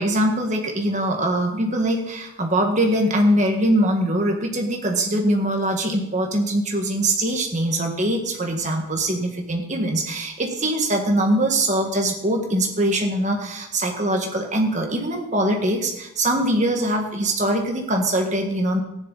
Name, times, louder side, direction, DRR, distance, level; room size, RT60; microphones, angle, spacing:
voice 1, 0.0-10.3 10.6-18.8, right 1 dB, 35° right, 2 dB, 1.7 m, -22 dB
14.5 x 10.5 x 4.1 m, 0.84 s
head